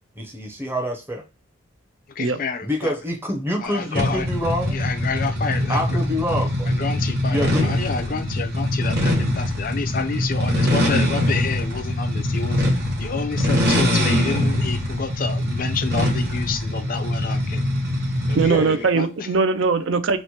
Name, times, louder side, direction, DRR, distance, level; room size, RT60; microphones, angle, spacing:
voice 1, 0.2-1.2 2.6-4.8 5.7-6.7 7.3-7.7 18.5-18.9, equal, 10° right, 2 dB, 0.6 m, -26 dB
voice 2, 2.1-2.9 3.6-4.3 4.7-6.0 6.7-12.6 13.0-17.6 18.3-19.3, left 5 dB, 40° left, 8 dB, 0.4 m, -29 dB
sound 1, 4.0-18.6, left 1 dB, 50° right, 1.0 m, -23 dB
voice 3, 18.3-20.2, right 4 dB, 65° right, 10 dB, 0.4 m, -20 dB
3.0 x 2.1 x 4.1 m, 0.30 s
head